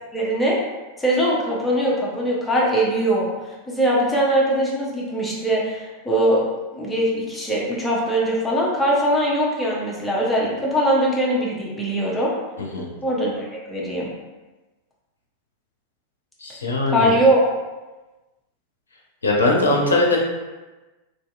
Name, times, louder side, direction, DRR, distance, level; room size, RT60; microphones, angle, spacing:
voice 1, 0.1-0.6 1.0-3.3 3.7-6.5 6.7-12.3 13.0-14.1 16.9-17.4, right 1 dB, 10° left, -5 dB, 0.6 m, -21 dB
voice 2, 16.4-17.1 19.2-20.2, left 2 dB, 75° left, -1 dB, 0.5 m, -20 dB
2.7 x 2.5 x 2.3 m, 1.2 s
figure-of-eight pair, 90°, 0 cm